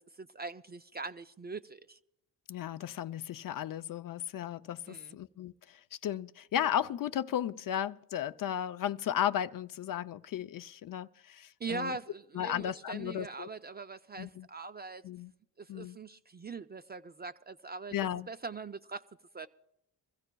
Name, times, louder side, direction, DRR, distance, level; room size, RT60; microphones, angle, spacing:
voice 1, 0.0-2.0 4.9-5.2 11.6-15.0 15.6-19.0 19.3-19.5, right 4 dB, 25° right, 0.4 m, -42 dB
voice 2, 2.5-12.0 12.3-13.5 14.2-14.5 15.0-15.3 15.7-16.0 17.9-18.3, left 10 dB, 50° left, 0.5 m, -35 dB
24.0 x 15.0 x 2.2 m
cardioid pair, 85°, 44 cm